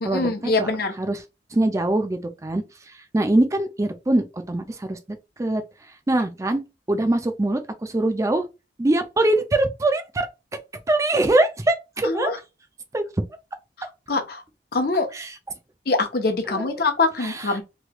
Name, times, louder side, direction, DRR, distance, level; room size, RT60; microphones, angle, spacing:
voice 1, 0.0-0.9 12.0-12.4 14.1-14.4 14.7-15.1 15.9-17.6, left 3 dB, 60° left, 0.8 m, -23 dB
voice 2, 1.5-5.0 5.4-5.6 6.1-6.6 6.9-8.5 8.8-10.3 10.9-12.3 12.9-13.0 15.1-15.3 16.5-16.7 17.2-17.5, right 2 dB, 20° right, 0.4 m, -23 dB
3.1 x 3.0 x 2.3 m
head